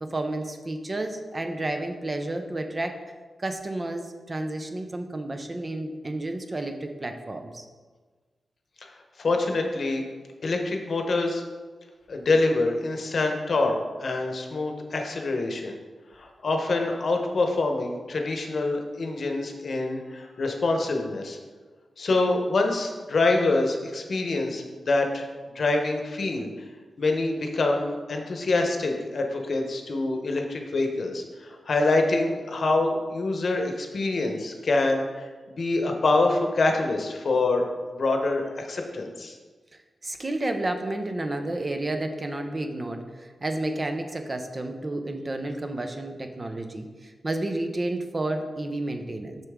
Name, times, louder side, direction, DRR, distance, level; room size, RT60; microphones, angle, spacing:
voice 1, 0.0-2.9 3.4-7.6 40.0-49.4, right 2 dB, 30° right, 5 dB, 0.6 m, -31 dB
voice 2, 9.2-10.0 10.4-11.4 12.1-15.8 16.1-21.4 22.0-25.3 25.5-26.5 27.0-39.4, left 2 dB, 60° left, 3 dB, 0.9 m, -25 dB
6.7 x 5.9 x 3.6 m, 1.4 s
wide cardioid pair, 110°, 0 cm